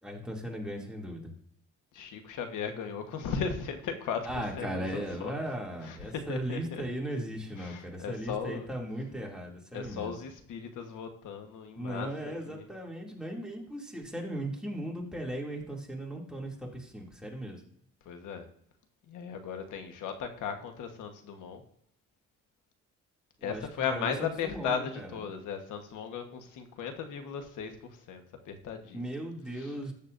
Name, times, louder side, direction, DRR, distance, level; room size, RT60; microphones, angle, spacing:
voice 1, 0.0-1.3 4.2-10.2 11.8-17.6 23.4-25.2 28.9-29.9, right 1 dB, 5° right, -2 dB, 2.6 m, -37 dB
voice 2, 1.9-5.3 5.8-6.8 7.6-8.7 9.7-12.1 12.5-12.6 18.0-18.5 19.1-21.6 23.4-29.0 29.6-29.7, left 6 dB, 85° left, 6 dB, 1.3 m, -37 dB
13.5 x 8.6 x 2.6 m, 0.69 s
cardioid pair, 90°, 30 cm